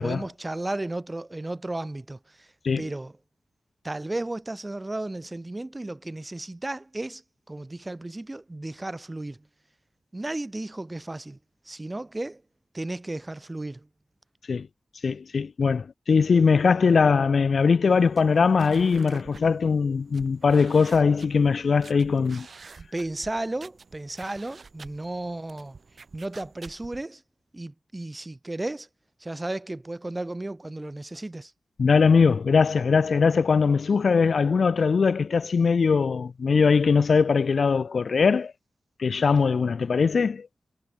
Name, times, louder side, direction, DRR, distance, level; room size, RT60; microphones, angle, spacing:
voice 1, 0.0-2.5 2.8-3.1 3.8-7.2 7.5-9.4 10.1-11.4 11.7-12.4 12.7-13.9 22.9-25.8 26.1-27.2 27.5-28.9 29.2-31.5, right 2 dB, 25° right, 4.4 m, -34 dB
voice 2, 15.0-22.5 31.8-38.5 39.0-40.5, left 5 dB, 75° left, 0.8 m, -21 dB
sound 1, 17.9-27.1, right 4 dB, 65° right, 5.1 m, -49 dB
wide cardioid pair, 70°, 0 cm